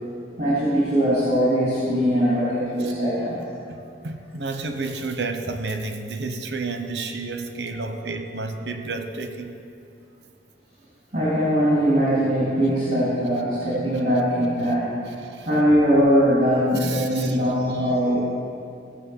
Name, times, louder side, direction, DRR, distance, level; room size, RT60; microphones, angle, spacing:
voice 1, 0.4-3.5 7.9-8.0 11.1-14.9 15.4-18.2, equal, 40° right, -9 dB, 3.3 m, -21 dB
voice 2, 4.0-9.5 15.2-15.5 16.8-17.4 17.8-17.9, right 3 dB, 70° right, 6 dB, 1.0 m, -31 dB
17.0 x 6.4 x 7.2 m, 2.5 s
head